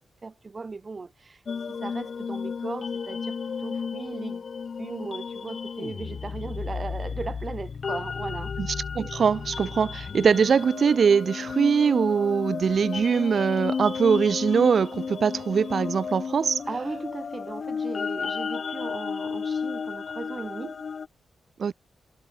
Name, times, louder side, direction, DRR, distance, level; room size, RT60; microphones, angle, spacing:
voice 1, 0.0-1.4 1.7-4.4 4.8-8.5 16.7-20.9, right 4 dB, 25° right, 1.6 m, -37 dB
sound 1, 1.5-21.1, left 6 dB, 45° left, 2.0 m, -33 dB
voice 2, 8.9-16.6 21.6-21.7, right 6 dB, 45° right, 1.5 m, -22 dB
wide cardioid pair, 175°, 0 cm